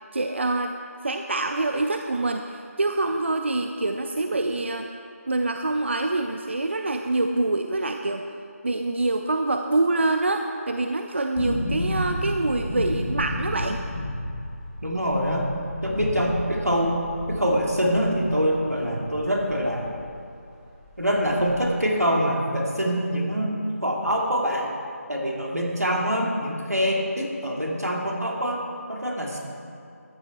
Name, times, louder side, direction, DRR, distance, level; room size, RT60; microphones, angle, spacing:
voice 1, 0.1-0.7 1.0-4.9 5.3-8.2 8.6-13.8, right 2 dB, 50° right, 5 dB, 0.5 m, -25 dB
sound 1, 11.4-20.2 20.4-20.5 20.8-21.8 22.1-22.2, left 1 dB, 20° left, 1.6 m, -32 dB
voice 2, 14.8-15.5 15.8-19.9 21.0-24.7 25.1-28.6 28.9-29.4, equal, 85° right, -1 dB, 2.5 m, -25 dB
13.5 x 9.1 x 4.5 m, 2.5 s
figure-of-eight pair, 160°, 8 cm